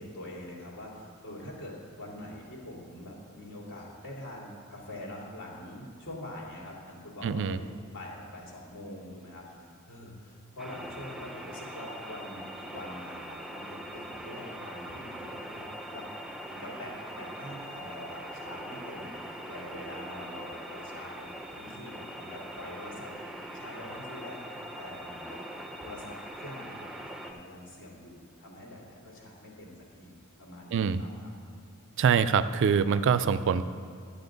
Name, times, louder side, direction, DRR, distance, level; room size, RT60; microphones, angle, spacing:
voice 1, 0.0-16.1 16.5-23.1 23.5-25.4 25.8-31.3, left 1 dB, 60° left, -3 dB, 2.8 m, -44 dB
voice 2, 7.2-7.6 30.7-31.0 32.0-33.6, right 6 dB, 60° right, 14 dB, 0.4 m, -24 dB
sound 1, 10.6-27.3, equal, ahead, 0.7 m, -42 dB
11.5 x 9.8 x 3.9 m, 2.4 s
head